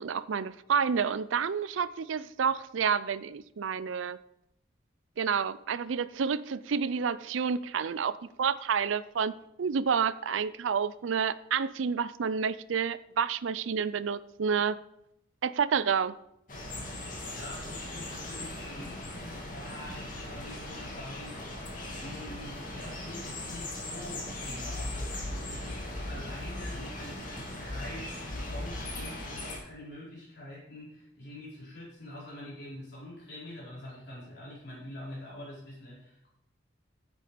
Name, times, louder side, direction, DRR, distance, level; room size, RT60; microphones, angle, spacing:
voice 1, 0.0-4.2 5.2-9.3 9.6-14.8 15.4-16.1, right 6 dB, 90° right, 16 dB, 0.5 m, -29 dB
sound 1, 16.5-29.6, left 1 dB, 45° left, 2.5 m, -38 dB
voice 2, 17.3-21.4 21.9-36.3, left 1 dB, 60° left, -7 dB, 4.7 m, -45 dB
10.0 x 8.2 x 5.0 m, 0.78 s
head